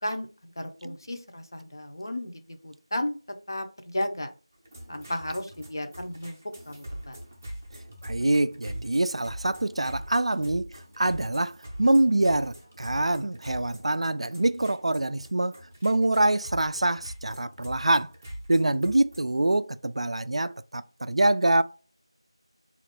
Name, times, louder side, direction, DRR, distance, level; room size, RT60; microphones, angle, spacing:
voice 1, 0.0-3.2 3.5-4.3 4.9-7.2, left 1 dB, 45° left, 0.6 m, -34 dB
sound 1, 4.5-19.2, equal, 20° right, 0.6 m, -43 dB
voice 2, 8.0-15.6 15.8-18.1 18.5-21.6, right 2 dB, 85° right, 0.3 m, -25 dB
3.9 x 2.5 x 3.5 m
figure-of-eight pair, 180°, 3 cm